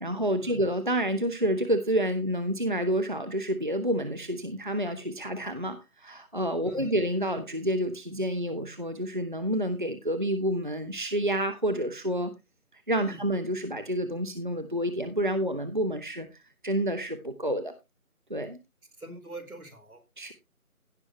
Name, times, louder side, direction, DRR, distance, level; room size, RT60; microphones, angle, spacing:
voice 1, 0.0-12.3 12.7-16.3 16.6-17.7 18.3-18.6 20.2-20.3, right 1 dB, 35° right, 9 dB, 0.8 m, -29 dB
voice 2, 19.0-20.0, right 1 dB, 80° right, 6 dB, 4.1 m, -44 dB
16.5 x 6.1 x 3.1 m, 0.25 s
figure-of-eight pair, 170°, 43 cm